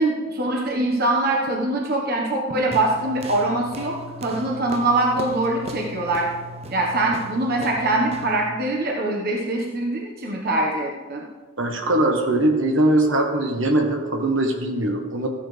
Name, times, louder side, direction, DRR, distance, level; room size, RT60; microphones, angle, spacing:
voice 1, 0.0-4.0 4.2-6.3 6.7-11.2, right 2 dB, 45° right, -1 dB, 1.3 m, -23 dB
sound 1, 2.7-8.5, right 1 dB, 30° right, 0.6 m, -38 dB
voice 2, 11.6-15.3, right 1 dB, 60° right, 3 dB, 1.3 m, -21 dB
14.5 x 10.0 x 3.4 m, 1.3 s
head